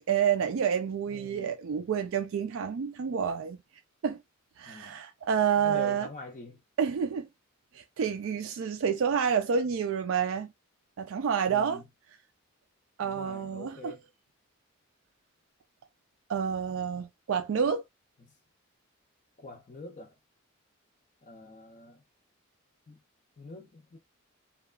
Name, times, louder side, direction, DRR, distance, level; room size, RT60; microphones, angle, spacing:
voice 1, 0.1-3.6 4.0-4.2 4.6-6.1 6.8-7.3 7.7-10.5 11.0-11.8 13.0-13.8 16.3-17.8, right 7 dB, 65° right, 0.3 m, -28 dB
voice 2, 1.1-1.5 4.6-5.0 5.6-6.6 11.5-11.8 13.0-14.1 18.2-18.3 19.4-20.1 21.2-22.0 22.9-23.0 23.4-24.0, left 2 dB, 35° left, 0.5 m, -45 dB
2.9 x 2.3 x 2.3 m
head